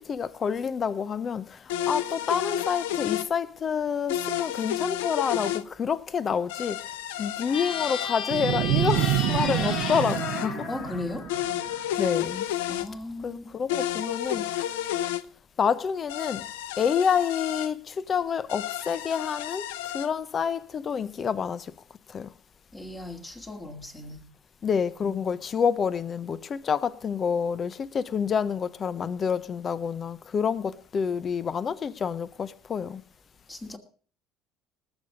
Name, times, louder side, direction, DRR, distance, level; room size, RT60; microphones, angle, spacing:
voice 1, 0.0-6.8 7.2-10.7 12.0-12.5 13.2-14.5 15.6-16.5 16.8-19.7 19.9-21.7 22.1-22.3 24.6-33.0, left 7 dB, 40° left, 0.8 m, -28 dB
sound 1, 1.7-3.3 4.1-5.6 6.5-8.1 8.9-10.5 11.3-12.9 13.7-15.2 16.1-17.7 18.5-20.1, left 12 dB, 85° left, 0.5 m, -31 dB
sound 2, 7.5-11.9, left 6 dB, 65° left, 1.8 m, -34 dB
sound 3, 8.3-11.6, right 15 dB, 75° right, 0.7 m, -27 dB
voice 2, 10.7-11.3 12.7-13.5 22.7-24.3 25.0-25.2 33.5-33.8, left 2 dB, 20° left, 2.3 m, -37 dB
19.5 x 7.2 x 5.1 m
supercardioid pair, 75°, 0 cm